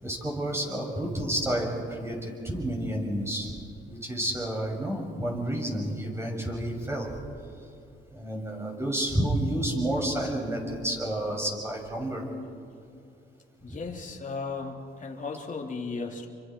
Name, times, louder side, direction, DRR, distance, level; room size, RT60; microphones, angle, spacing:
voice 1, 0.0-3.5 3.9-7.1 8.1-12.2 13.7-13.8, right 1 dB, 15° right, -1 dB, 7.1 m, -30 dB
voice 2, 13.6-16.3, left 4 dB, 40° left, 1 dB, 3.4 m, -35 dB
29.5 x 25.0 x 4.8 m, 2.6 s
cardioid pair, 90°, 20 cm